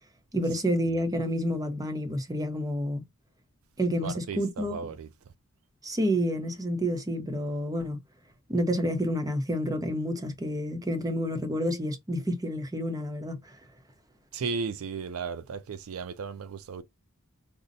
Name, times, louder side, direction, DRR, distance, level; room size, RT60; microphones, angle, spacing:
voice 1, 0.3-3.0 3.8-4.8 5.8-8.0 8.5-13.6, equal, 15° right, 0.7 m, -29 dB
voice 2, 4.0-5.1 14.3-16.8, right 5 dB, 70° right, 0.4 m, -35 dB
5.1 x 2.0 x 2.7 m
head